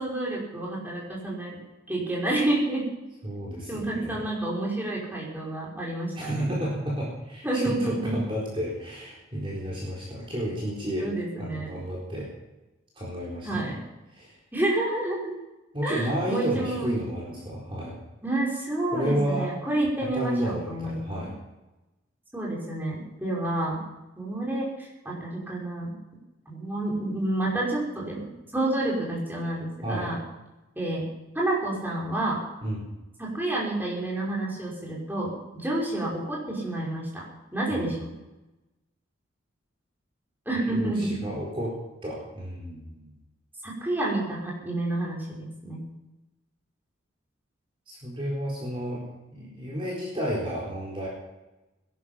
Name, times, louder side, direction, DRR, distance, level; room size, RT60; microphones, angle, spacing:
voice 1, 0.0-1.6 1.9-2.9 3.7-6.5 7.4-8.2 11.0-11.8 13.4-13.8 14.5-15.4 15.8-16.9 18.2-21.2 22.3-23.7 24.2-25.9 26.5-28.3 28.5-30.2 30.8-31.1 31.3-32.4 33.2-37.3 37.5-38.2 40.5-41.2 43.6-45.9, right 1 dB, 10° right, -4 dB, 5.4 m, -29 dB
voice 2, 3.2-4.2 6.1-11.1 11.4-12.3 13.0-13.7 14.1-14.3 15.7-18.0 18.9-19.5 20.0-21.3 29.8-30.1 32.6-32.9 37.7-37.9 40.7-43.1 47.9-51.1, equal, 25° right, -5 dB, 4.3 m, -32 dB
21.0 x 12.0 x 5.8 m, 1.0 s
head